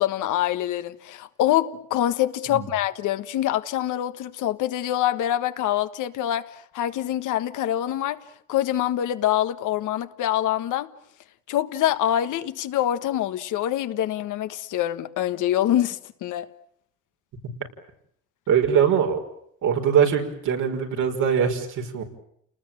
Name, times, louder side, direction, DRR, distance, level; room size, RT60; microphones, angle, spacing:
voice 1, 0.0-6.5 6.7-8.2 8.5-10.9 11.5-16.5, left 12 dB, 85° left, 1.5 m, -25 dB
voice 2, 18.5-19.2 19.6-22.0, right 7 dB, 80° right, 5.5 m, -22 dB
30.0 x 19.5 x 9.0 m
cardioid pair, 90°, 30 cm